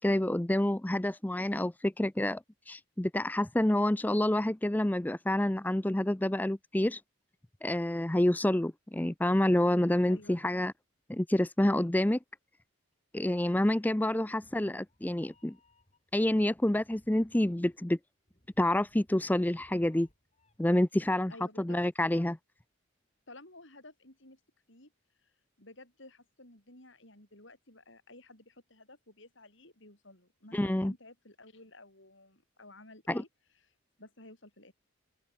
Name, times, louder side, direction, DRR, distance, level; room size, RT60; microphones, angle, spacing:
voice 1, 0.0-7.0 7.6-10.7 11.1-12.2 13.1-15.5 16.1-18.0 18.6-20.1 20.6-21.3 21.6-22.4 30.5-30.9 33.1-33.2, left 1 dB, 10° left, 0.4 m, -28 dB
voice 2, 10.1-10.4 21.3-21.8 23.3-24.4 24.7-24.9 25.2-25.3 25.6-33.3 34.0-34.7, left 2 dB, 60° left, 7.0 m, -53 dB
Meow, 14.1-20.8, left 1 dB, 30° left, 6.5 m, -66 dB
open air
head